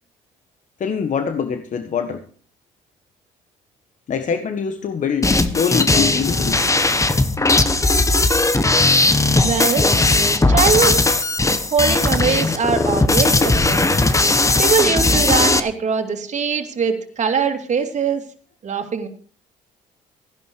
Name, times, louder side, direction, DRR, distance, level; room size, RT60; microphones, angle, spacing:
voice 1, 0.8-2.2 4.1-6.6, left 7 dB, 50° left, 8 dB, 1.6 m, -24 dB
sound 1, 5.2-15.6, left 2 dB, 20° left, 1.5 m, -17 dB
voice 2, 9.4-9.9 10.5-11.0 11.7-13.9 14.6-18.2 18.6-19.1, right 6 dB, 45° right, 5 dB, 2.9 m, -21 dB
15.5 x 11.0 x 4.8 m, 0.42 s
supercardioid pair, 65°, 16 cm